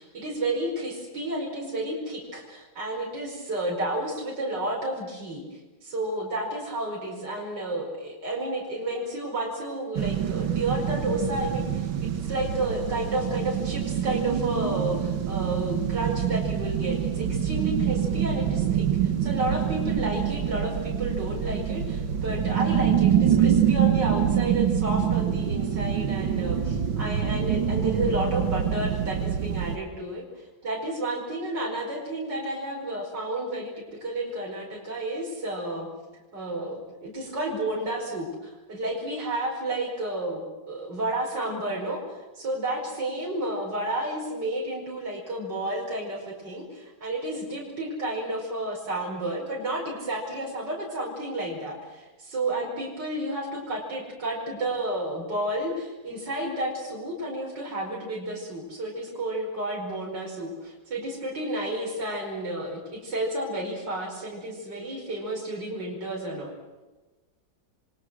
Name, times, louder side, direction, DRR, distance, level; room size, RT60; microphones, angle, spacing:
voice 1, 0.0-35.9 36.3-66.5, right 1 dB, 60° right, -2 dB, 5.7 m, -31 dB
sound 1, 10.0-29.8, right 9 dB, 80° right, 2.1 m, -25 dB
28.5 x 23.5 x 6.3 m, 1.2 s
omnidirectional pair, 2.1 m